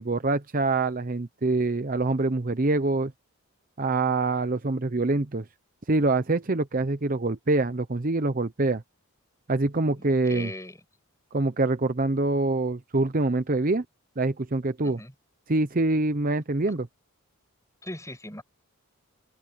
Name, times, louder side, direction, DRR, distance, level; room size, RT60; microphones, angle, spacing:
voice 1, 0.0-3.1 3.8-5.4 5.9-8.8 9.5-10.5 11.3-13.8 14.2-15.0 15.5-16.9, right 2 dB, 40° right, 0.8 m, -25 dB
voice 2, 10.0-10.8 14.8-15.1 17.8-18.4, left 1 dB, 15° left, 7.6 m, -39 dB
open air
head